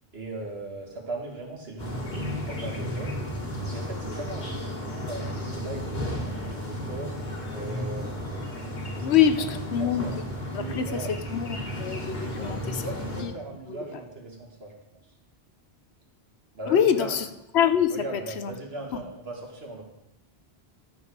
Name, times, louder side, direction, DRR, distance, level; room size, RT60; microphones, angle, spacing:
voice 1, 0.1-3.2 3.7-8.3 8.9-9.1 9.4-10.2 10.5-11.1 11.4-11.6 12.2-14.7 15.0-15.1 16.5-17.2 17.9-19.8, right 2 dB, 70° right, 0 dB, 2.2 m, -39 dB
sound 1, 1.8-13.2, equal, 45° left, 1.8 m, -33 dB
voice 2, 9.0-10.1 10.5-12.8 13.2-13.3 16.7-17.3 17.5-18.5 18.9-19.0, left 9 dB, 85° left, 10 dB, 1.0 m, -25 dB
12.0 x 6.9 x 4.8 m, 0.91 s
omnidirectional pair, 1.1 m